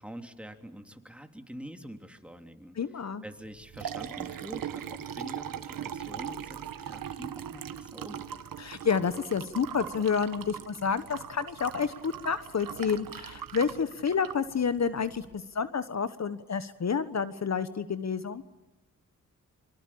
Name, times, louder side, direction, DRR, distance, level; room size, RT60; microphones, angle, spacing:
voice 1, 0.0-2.8 3.2-8.2, equal, 5° right, 6 dB, 3.1 m, -45 dB
voice 2, 2.8-3.2 8.6-18.4, left 6 dB, 55° left, 13 dB, 1.2 m, -29 dB
Liquid, 3.4-15.4, right 9 dB, 90° right, 1.4 m, -40 dB
25.5 x 24.0 x 8.6 m, 0.97 s
cardioid pair, 65°, 33 cm